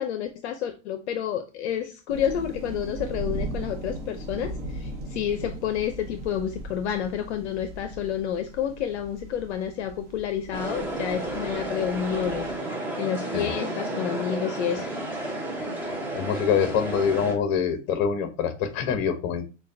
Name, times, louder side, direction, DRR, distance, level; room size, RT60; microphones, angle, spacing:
voice 1, 0.0-12.5 13.0-14.9, left 9 dB, 60° left, 8 dB, 0.6 m, -29 dB
sound 1, 2.1-12.6, right 1 dB, 35° right, 0.9 m, -38 dB
sound 2, 10.5-17.3, right 1 dB, 5° right, 0.6 m, -32 dB
voice 2, 16.1-19.4, left 7 dB, 35° left, 8 dB, 0.9 m, -25 dB
6.2 x 2.3 x 2.5 m, 0.31 s
hypercardioid pair, 125°, 38 cm